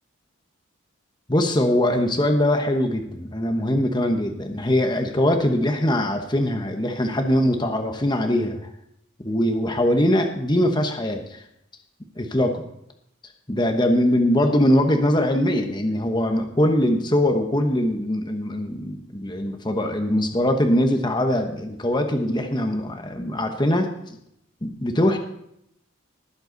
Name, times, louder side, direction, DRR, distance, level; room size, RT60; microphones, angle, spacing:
voice 1, 1.3-8.6 9.2-11.4 12.2-12.6 13.5-24.2 24.6-25.2, left 1 dB, 20° left, 5 dB, 1.1 m, -22 dB
19.5 x 8.1 x 4.0 m, 0.76 s
head